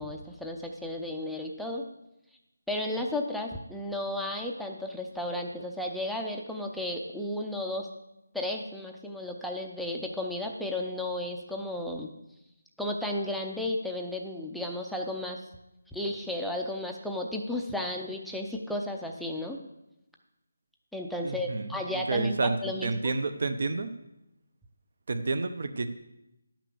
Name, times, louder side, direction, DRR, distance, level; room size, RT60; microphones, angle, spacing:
voice 1, 0.0-1.8 2.7-7.9 8.3-12.1 12.8-15.4 15.9-19.6 20.9-23.1, left 1 dB, ahead, 0 dB, 0.5 m, -33 dB
voice 2, 21.2-23.9 25.1-25.9, right 3 dB, 55° right, 9 dB, 0.8 m, -30 dB
11.0 x 6.0 x 6.9 m, 0.90 s
figure-of-eight pair, 170°, 0 cm